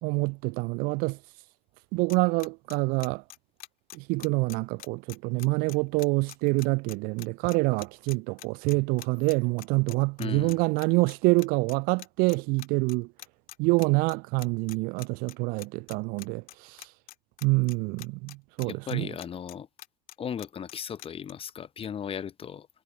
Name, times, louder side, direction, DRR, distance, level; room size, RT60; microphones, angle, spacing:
voice 1, 0.0-1.2 1.9-3.2 3.9-13.1 13.6-16.9 17.4-19.1, right 28 dB, 50° right, 0.4 m, -26 dB
sound 1, 2.1-21.3, left 14 dB, 50° left, 2.8 m, -44 dB
voice 2, 10.2-10.6 18.6-19.7 20.2-22.7, left 8 dB, 30° left, 1.0 m, -36 dB
figure-of-eight pair, 65°, 19 cm